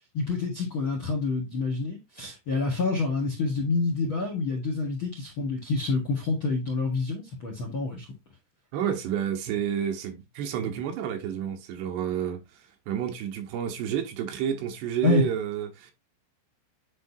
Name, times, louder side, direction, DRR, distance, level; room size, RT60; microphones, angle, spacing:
voice 1, 0.1-8.0 15.0-15.2, left 3 dB, 55° left, 1.4 m, -27 dB
voice 2, 8.7-12.4 12.9-15.9, right 9 dB, 80° right, 3.2 m, -30 dB
10.0 x 3.9 x 2.7 m
omnidirectional pair, 4.9 m